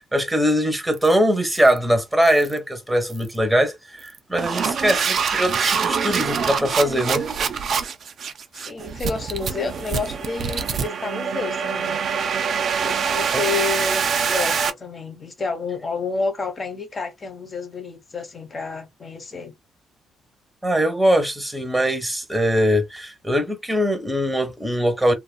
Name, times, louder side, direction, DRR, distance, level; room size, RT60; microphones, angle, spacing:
voice 1, 0.1-7.2 13.3-13.4 20.6-25.1, equal, 5° right, 1.0 m, -21 dB
sound 1, 0.9-1.1 1.5-1.8 2.2-2.6 3.1-3.4 4.0-14.7, right 6 dB, 55° right, 0.5 m, -25 dB
voice 2, 8.5-12.0 12.8-19.5, left 4 dB, 35° left, 1.1 m, -30 dB
2.7 x 2.5 x 2.2 m
cardioid pair, 90°, 0 cm